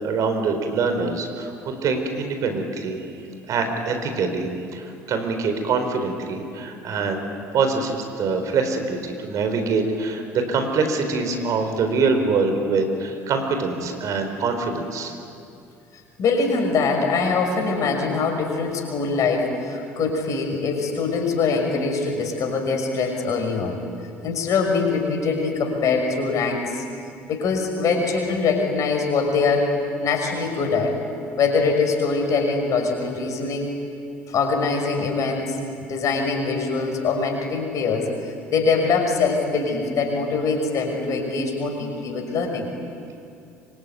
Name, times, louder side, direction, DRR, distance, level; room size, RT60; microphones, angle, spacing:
voice 1, 0.0-3.1 3.5-7.3 7.5-15.1, right 4 dB, 55° right, 6 dB, 4.4 m, -24 dB
voice 2, 16.2-23.8 24.2-26.8 27.3-29.7 30.0-31.0 31.4-33.7 34.3-35.6 35.8-38.1 38.5-42.7, left 4 dB, 55° left, 3 dB, 6.2 m, -23 dB
25.5 x 24.5 x 9.4 m, 2.5 s
hypercardioid pair, 60°, 7 cm